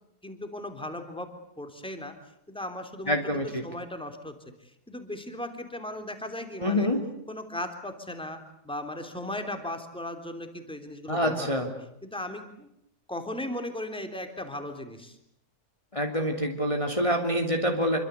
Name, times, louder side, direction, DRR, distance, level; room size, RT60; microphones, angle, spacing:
voice 1, 0.2-1.3 1.6-2.1 2.5-3.2 3.4-4.3 4.9-6.9 7.3-11.5 12.0-12.7 13.1-15.2, left 1 dB, 5° left, 7 dB, 3.3 m, -37 dB
voice 2, 3.1-3.6 6.6-7.0 11.1-11.7 15.9-18.0, equal, 20° left, 3 dB, 3.0 m, -26 dB
27.5 x 24.5 x 8.3 m, 0.74 s
omnidirectional pair, 1.7 m